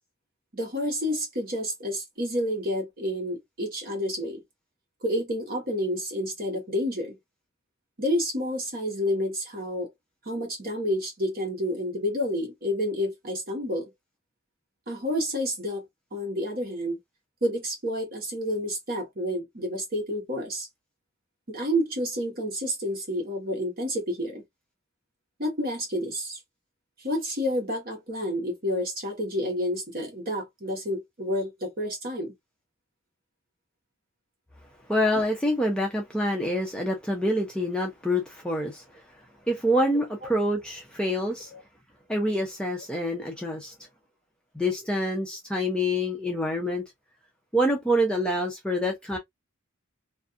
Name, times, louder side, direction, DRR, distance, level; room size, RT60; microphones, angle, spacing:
voice 1, 0.5-4.4 5.0-7.1 8.0-9.9 10.3-13.9 14.9-15.9 16.1-17.0 17.4-20.7 21.5-24.4 25.4-26.4 27.0-32.3 41.5-41.6, equal, 45° right, 1.1 m, -29 dB
voice 2, 34.9-39.0 39.5-41.5 42.1-43.7 44.5-46.8 47.5-49.2, equal, 5° left, 0.4 m, -26 dB
2.5 x 2.4 x 2.4 m
head